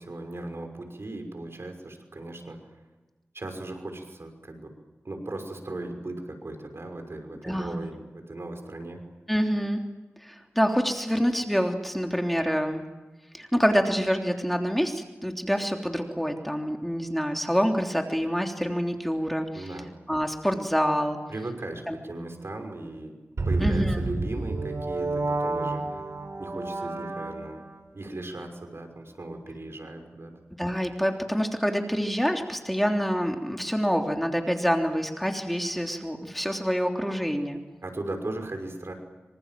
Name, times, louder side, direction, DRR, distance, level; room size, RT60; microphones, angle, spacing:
voice 1, 0.0-2.8 3.3-4.7 5.0-9.0 19.5-19.9 21.3-23.1 23.5-26.0 26.4-27.6 27.9-30.3 37.8-38.9, right 2 dB, 60° right, 5 dB, 5.8 m, -37 dB
voice 2, 7.4-7.8 9.3-9.8 10.2-12.8 13.3-19.7 20.1-21.2 21.9-22.0 23.6-24.0 30.6-37.6, equal, 5° left, 3 dB, 3.3 m, -26 dB
sound 1, 23.4-27.8, right 3 dB, 85° right, 4.4 m, -30 dB
26.5 x 25.5 x 7.7 m, 1.2 s
wide cardioid pair, 50°, 5 cm